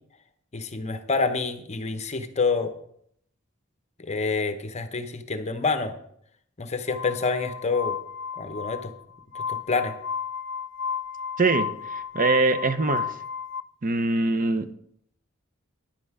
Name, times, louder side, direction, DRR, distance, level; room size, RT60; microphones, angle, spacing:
voice 1, 0.5-2.7 4.0-5.9 6.6-8.0 8.4-8.9 9.3-9.9, left 4 dB, 35° left, 9 dB, 0.8 m, -27 dB
Glass, 6.9-13.6, left 6 dB, 65° left, 0.5 m, -33 dB
voice 2, 11.4-13.2 13.8-14.8, right 3 dB, 40° right, 11 dB, 0.6 m, -23 dB
10.5 x 7.8 x 4.8 m, 0.69 s
head